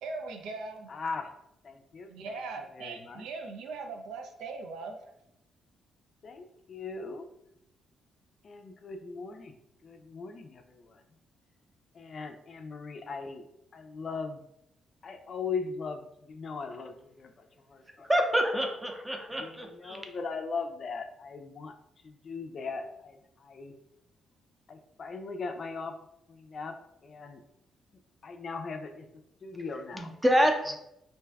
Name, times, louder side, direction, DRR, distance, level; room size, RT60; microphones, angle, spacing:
voice 1, 0.0-0.9 2.1-5.0, right 3 dB, 90° right, 4 dB, 0.4 m, -40 dB
voice 2, 0.9-1.3 1.6-2.4 2.7-3.2 6.2-7.3 8.4-9.5 9.8-11.0 11.9-14.4 15.0-18.1 19.3-23.7 24.7-25.9 26.3-26.7 27.0-27.4 28.2-29.1 29.4-30.1, left 4 dB, 50° left, 6 dB, 0.4 m, -39 dB
voice 3, 18.0-20.0 29.9-30.8, equal, 10° right, 3 dB, 0.5 m, -27 dB
2.6 x 2.2 x 3.4 m, 0.82 s
cardioid pair, 85°, 0 cm